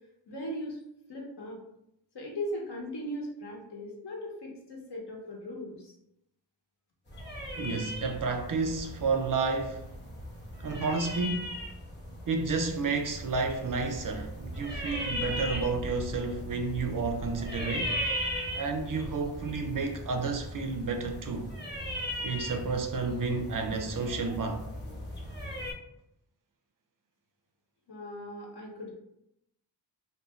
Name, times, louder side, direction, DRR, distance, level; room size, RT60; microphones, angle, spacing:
voice 1, 0.3-0.8 1.1-1.6 2.1-5.9 27.9-28.9, equal, 60° left, 0.9 m, -38 dB
sound 1, 7.1-25.7, equal, 25° left, 0.9 m, -38 dB
voice 2, 7.6-9.8 10.6-11.5 12.3-17.9 18.5-21.5 22.2-24.7, right 4 dB, 45° right, 0.4 m, -31 dB
2.5 x 2.3 x 3.0 m
cardioid pair, 50°, 45 cm